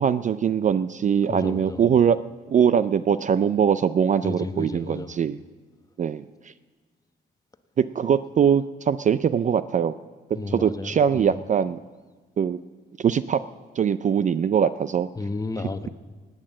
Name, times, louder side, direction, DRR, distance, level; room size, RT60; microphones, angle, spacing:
voice 1, 0.0-2.2 2.5-5.4 6.0-6.2 7.8-9.9 10.5-11.8 12.4-12.6 13.0-13.4 13.8-15.1, right 8 dB, 40° right, 14 dB, 0.4 m, -22 dB
voice 2, 1.3-1.8 4.2-5.1 10.3-11.4 15.2-15.9, left 3 dB, 20° left, 9 dB, 1.0 m, -32 dB
17.5 x 8.9 x 7.5 m, 1.4 s
cardioid pair, 90°, 20 cm